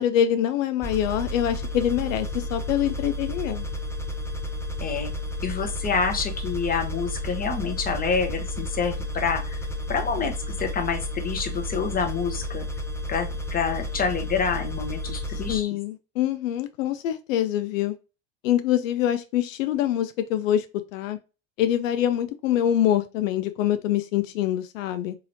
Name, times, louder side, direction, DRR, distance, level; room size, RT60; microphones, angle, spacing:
voice 1, 0.0-3.7 15.5-18.0 18.4-20.6 20.9-21.2 21.6-25.2, left 11 dB, 80° left, 0.5 m, -25 dB
sound 1, 0.8-15.6, left 1 dB, 5° left, 0.4 m, -32 dB
voice 2, 5.4-9.6 9.9-10.3 10.6-12.7 13.1-15.7, left 5 dB, 25° left, 0.9 m, -27 dB
3.9 x 2.9 x 2.6 m
hypercardioid pair, 85°, 38 cm